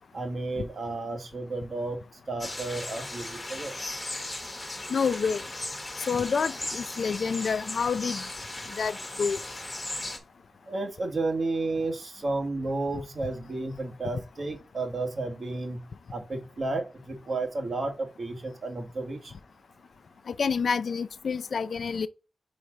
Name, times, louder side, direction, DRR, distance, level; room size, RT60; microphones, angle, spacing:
voice 1, 0.1-3.8 8.7-8.8 10.7-19.4, right 2 dB, 40° right, 1.2 m, -32 dB
sound 1, 2.4-10.2, left 2 dB, 15° left, 1.2 m, -37 dB
voice 2, 4.9-5.4 6.1-8.2 8.8-9.4 20.3-22.1, left 5 dB, 55° left, 0.5 m, -28 dB
4.8 x 4.1 x 4.9 m
wide cardioid pair, 165°, 0 cm